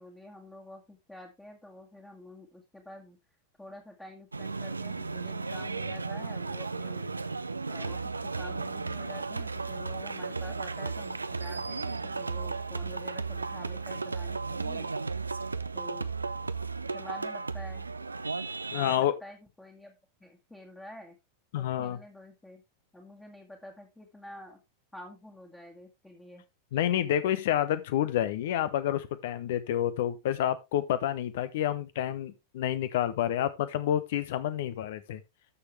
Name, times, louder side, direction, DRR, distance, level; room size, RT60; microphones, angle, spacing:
voice 1, 0.0-3.2 3.6-7.2 7.7-14.9 15.7-16.1 16.9-17.9 18.7-21.2 21.6-22.6 22.9-24.6 24.9-26.4, left 1 dB, 5° left, 1.9 m, -48 dB
sound 1, 4.3-19.0, right 4 dB, 80° right, 0.6 m, -35 dB
voice 2, 18.7-19.1 21.5-22.0 26.7-35.2, left 11 dB, 55° left, 1.1 m, -29 dB
12.5 x 6.6 x 3.3 m
figure-of-eight pair, 90°, 0 cm